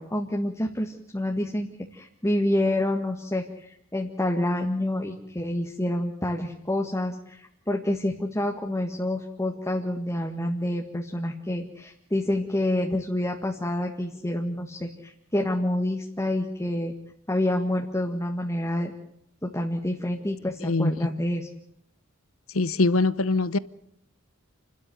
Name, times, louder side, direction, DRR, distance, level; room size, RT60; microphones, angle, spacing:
voice 1, 0.0-16.9 17.3-18.9 19.4-21.5, left 1 dB, 15° left, 1.9 m, -28 dB
voice 2, 20.6-20.9 22.5-23.6, left 3 dB, 70° left, 0.9 m, -23 dB
29.5 x 12.5 x 9.3 m
head